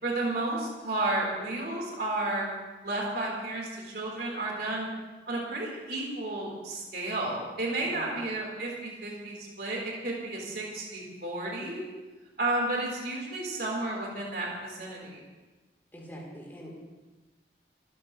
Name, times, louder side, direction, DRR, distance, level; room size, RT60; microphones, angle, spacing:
voice 1, 0.0-2.5 2.8-4.9 5.3-11.8 12.4-15.2, right 2 dB, 55° right, -3 dB, 4.4 m, -32 dB
voice 2, 7.8-8.1 15.9-16.8, equal, 10° left, -3 dB, 3.9 m, -44 dB
27.0 x 15.0 x 3.4 m, 1.3 s
head